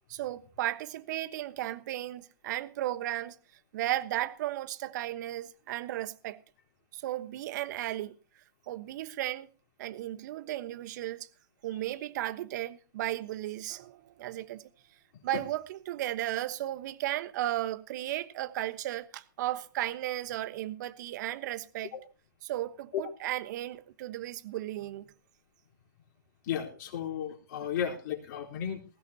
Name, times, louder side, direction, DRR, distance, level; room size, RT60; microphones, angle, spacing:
voice 1, 0.1-3.4 3.7-6.4 6.9-8.1 8.7-9.5 9.8-11.3 11.6-14.6 15.2-21.9 22.4-25.1, right 14 dB, 55° right, 1.2 m, -35 dB
voice 2, 26.4-28.9, left 9 dB, 55° left, 4.2 m, -34 dB
20.0 x 16.0 x 2.9 m
hypercardioid pair, 110°, 11 cm